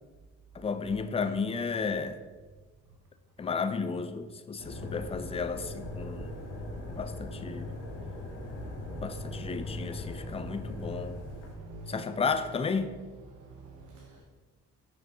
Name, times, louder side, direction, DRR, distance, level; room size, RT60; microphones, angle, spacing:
voice 1, 0.5-2.2 3.4-6.3 6.9-7.7 9.0-11.2 11.9-13.0, left 5 dB, 20° left, 10 dB, 0.4 m, -33 dB
sound 1, 4.6-11.5, left 2 dB, 85° left, 1.4 m, -39 dB
voice 2, 11.2-12.2 13.4-14.3, right 3 dB, 80° right, 0 dB, 0.8 m, -46 dB
5.5 x 5.1 x 3.5 m, 1.4 s
cardioid pair, 90°, 30 cm